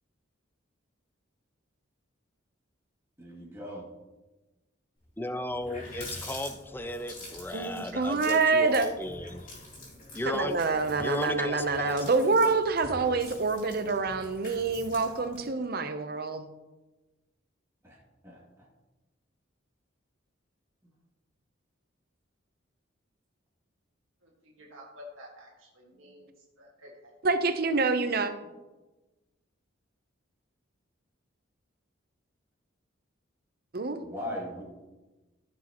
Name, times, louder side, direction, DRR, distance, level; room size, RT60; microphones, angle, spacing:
voice 1, 3.2-3.8 17.8-18.0 18.2-18.4 34.0-34.6, left 1 dB, 15° right, -5 dB, 2.3 m, -38 dB
Water tap faucet, 5.1-5.2 5.4-15.5, left 1 dB, 40° left, 3.4 m, -46 dB
voice 2, 5.2-9.5 10.1-10.6 11.0-12.5, left 1 dB, 10° left, 10 dB, 0.4 m, -35 dB
voice 3, 7.5-8.9 10.3-16.5 27.2-28.3 33.7-34.0, right 4 dB, 50° right, 9 dB, 0.7 m, -26 dB
voice 4, 24.2-26.3 26.6-27.1, left 1 dB, 80° right, -3 dB, 1.7 m, -50 dB
15.0 x 6.3 x 3.0 m, 1.1 s
head